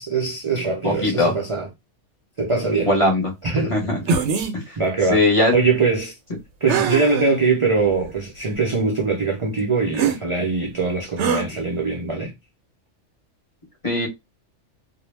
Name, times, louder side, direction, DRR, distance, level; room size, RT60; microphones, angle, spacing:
voice 1, 0.0-1.7 2.4-3.0 3.4-3.8 4.8-5.2 5.5-6.2 6.6-12.3, right 4 dB, 50° right, 0.3 m, -22 dB
voice 2, 0.8-1.4 2.8-3.3 3.6-4.0 4.5-4.8 5.1-5.5 13.8-14.1, left 2 dB, 30° left, 0.8 m, -20 dB
sound 1, 4.1-4.5 6.7-7.3 8.0-8.1 9.9-10.2 11.2-11.4, right 6 dB, 75° right, 0.9 m, -22 dB
2.2 x 2.0 x 3.1 m
omnidirectional pair, 1.2 m